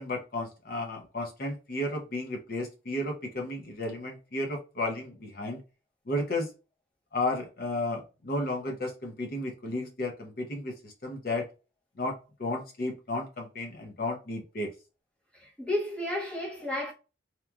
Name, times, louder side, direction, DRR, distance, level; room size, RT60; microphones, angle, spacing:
voice 1, 0.0-5.6 6.1-6.5 7.1-11.5 12.0-14.7, left 2 dB, 50° left, 0.6 m, -33 dB
voice 2, 15.3-16.9, left 1 dB, 5° left, 0.6 m, -32 dB
2.9 x 2.3 x 2.2 m
head